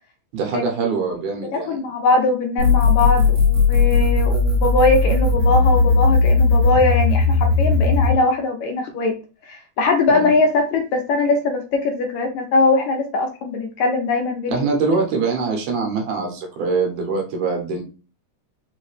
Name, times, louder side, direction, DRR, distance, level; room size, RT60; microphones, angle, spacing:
voice 1, 0.3-1.8 10.1-10.3 14.5-17.8, right 4 dB, 75° right, 1 dB, 2.4 m, -23 dB
voice 2, 1.5-9.1 9.5-14.7, left 3 dB, 75° left, 3 dB, 1.9 m, -21 dB
sound 1, 2.6-8.1, left 3 dB, 55° right, 2.7 m, -17 dB
5.4 x 2.8 x 3.2 m, 0.34 s
omnidirectional pair, 3.7 m